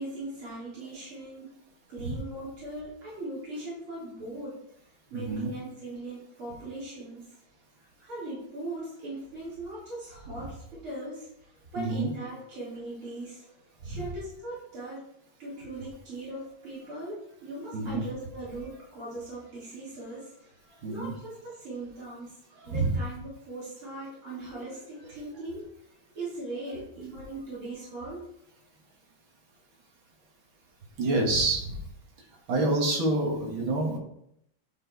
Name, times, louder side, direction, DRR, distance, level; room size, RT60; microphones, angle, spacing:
voice 1, 0.0-1.5 1.9-4.5 5.1-7.2 7.7-13.4 13.8-15.0 15.4-22.4 22.7-28.2, right 2 dB, 85° right, -9 dB, 4.4 m, -40 dB
voice 2, 5.1-5.5 11.8-12.1 13.9-14.0 17.7-18.1 20.8-21.1 22.6-23.0 31.0-31.8 32.5-34.0, right 2 dB, 70° right, 0 dB, 2.4 m, -27 dB
11.0 x 4.6 x 4.7 m, 0.75 s
omnidirectional pair, 2.3 m